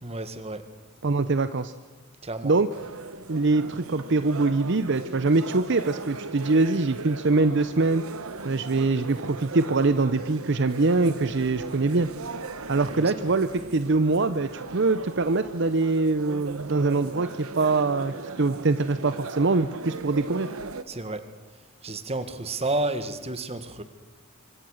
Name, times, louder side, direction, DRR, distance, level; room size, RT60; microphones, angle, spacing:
voice 1, 0.0-0.7 2.2-2.6 12.9-13.1 20.9-21.3 21.8-23.8, right 2 dB, 30° right, 10 dB, 1.7 m, -31 dB
voice 2, 1.0-1.7 2.4-2.7 3.3-8.0 8.4-12.1 12.7-20.5, right 3 dB, 55° right, 12 dB, 0.7 m, -23 dB
sound 1, 2.7-20.8, right 3 dB, 90° right, 1.2 m, -38 dB
25.5 x 24.5 x 6.5 m, 1.3 s
head